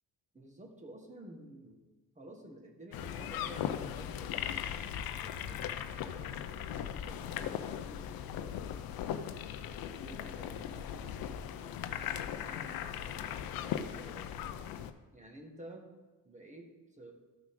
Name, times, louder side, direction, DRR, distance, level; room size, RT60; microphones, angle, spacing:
voice 1, 0.3-1.8 2.1-9.1 9.7-14.6 15.1-15.8 16.2-17.1, right 1 dB, 20° right, 2 dB, 1.7 m, -53 dB
on a wooden ship at sea, 2.9-14.9, left 9 dB, 85° left, 0.6 m, -38 dB
13.5 x 6.0 x 3.8 m, 1.2 s
cardioid pair, 95°, 34 cm